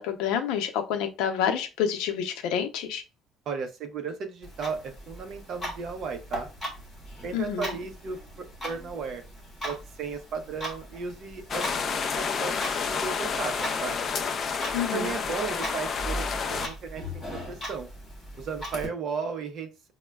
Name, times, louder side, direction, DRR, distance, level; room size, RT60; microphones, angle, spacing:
voice 1, 0.0-3.0 7.3-7.6 14.7-15.1, left 8 dB, 85° left, 6 dB, 0.6 m, -28 dB
voice 2, 3.5-6.5 7.2-9.2 9.6-11.8 12.2-14.0 14.9-17.9 18.3-19.7, right 5 dB, 45° right, 6 dB, 0.6 m, -35 dB
Clock, 4.4-18.9, equal, 10° left, 1.6 m, -39 dB
sound 1, 11.5-16.7, left 5 dB, 30° left, 0.3 m, -30 dB
6.0 x 2.2 x 2.3 m, 0.30 s
cardioid pair, 180°, 0 cm